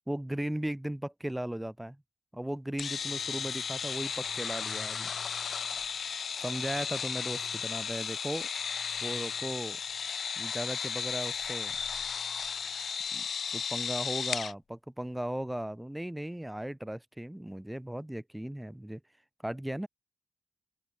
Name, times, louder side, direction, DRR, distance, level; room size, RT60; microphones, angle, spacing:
voice 1, 0.1-2.0 2.3-5.1 6.4-8.5 9.0-9.8 10.4-11.8 13.1-13.2 13.5-14.6 15.0-19.0 19.4-19.9, right 1 dB, 5° right, 2.4 m, -36 dB
sound 1, 2.8-14.5, left 6 dB, 45° left, 0.7 m, -35 dB
open air
wide cardioid pair, 165°, 0 cm